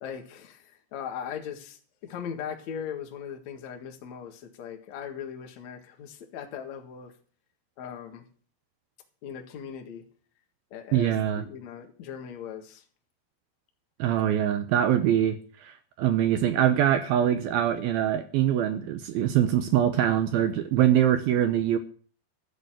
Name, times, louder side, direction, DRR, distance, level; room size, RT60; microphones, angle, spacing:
voice 1, 0.0-7.1 7.8-8.3 9.2-10.0 10.7-12.8, left 8 dB, 50° left, 4 dB, 2.4 m, -39 dB
voice 2, 10.9-11.4 14.0-21.8, right 10 dB, 75° right, 9 dB, 2.3 m, -23 dB
13.5 x 6.7 x 9.0 m, 0.43 s
omnidirectional pair, 5.1 m